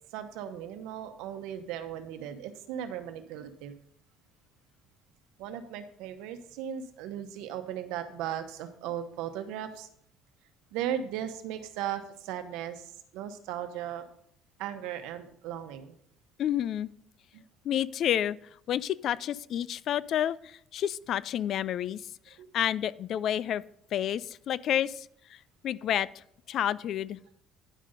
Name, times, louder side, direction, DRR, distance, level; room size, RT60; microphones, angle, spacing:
voice 1, 0.1-3.7 5.4-9.9 10.7-14.1 14.6-16.0 17.3-17.4 22.4-22.5, right 10 dB, 85° right, 9 dB, 1.0 m, -37 dB
voice 2, 16.4-16.9 17.6-18.4 18.7-22.0 22.3-23.6 23.9-27.4, left 10 dB, 55° left, 19 dB, 0.4 m, -30 dB
10.0 x 5.1 x 5.5 m, 0.66 s
cardioid pair, 125°, 0 cm